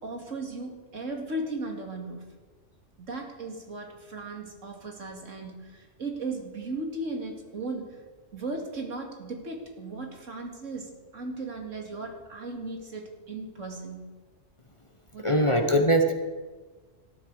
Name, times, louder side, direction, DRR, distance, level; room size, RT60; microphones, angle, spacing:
voice 1, 0.0-2.2 3.0-8.0 8.3-14.1 15.1-15.6, right 2 dB, 80° right, 2 dB, 2.7 m, -36 dB
voice 2, 15.2-16.1, right 1 dB, 25° left, 5 dB, 1.1 m, -21 dB
18.5 x 12.0 x 4.8 m, 1.3 s
omnidirectional pair, 1.3 m